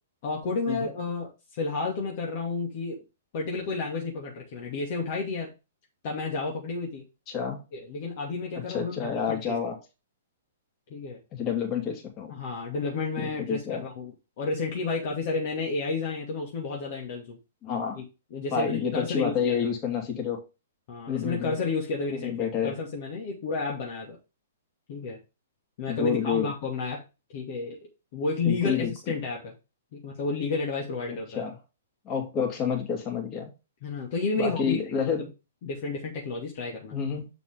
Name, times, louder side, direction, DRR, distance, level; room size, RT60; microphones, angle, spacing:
voice 1, 0.2-1.3 1.6-3.0 3.3-5.5 6.0-7.0 7.7-9.5 10.9-11.2 12.3-14.1 14.4-17.4 18.0-18.1 18.3-19.6 20.9-24.2 24.9-25.2 25.8-27.0 27.3-27.8 28.1-29.5 29.9-31.4 33.8-35.1 35.6-37.0, left 4 dB, 50° left, -1 dB, 2.4 m, -31 dB
voice 2, 7.3-7.6 8.7-9.7 11.3-12.3 13.2-13.8 17.6-18.0 18.5-20.4 21.1-21.6 22.1-22.7 25.9-26.5 28.4-28.9 31.3-31.5 32.0-33.5 34.3-35.2 36.9-37.3, left 7 dB, 30° left, 1 dB, 3.1 m, -29 dB
7.4 x 5.9 x 3.6 m, 0.27 s
figure-of-eight pair, 115°, 0 cm